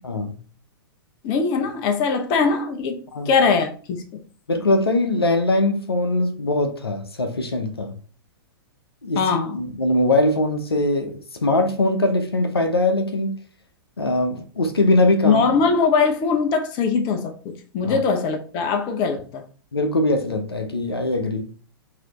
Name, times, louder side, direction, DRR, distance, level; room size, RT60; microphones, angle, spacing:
voice 1, 0.0-0.4 3.1-3.3 4.5-7.9 9.0-9.3 9.5-13.3 14.0-15.5 17.8-18.0 19.7-21.5, left 2 dB, 85° left, 0.8 m, -21 dB
voice 2, 1.2-3.0 3.3-4.2 9.2-9.6 15.2-19.4, left 5 dB, 35° left, 0.9 m, -21 dB
5.9 x 2.8 x 3.1 m
figure-of-eight pair, 105°, 13 cm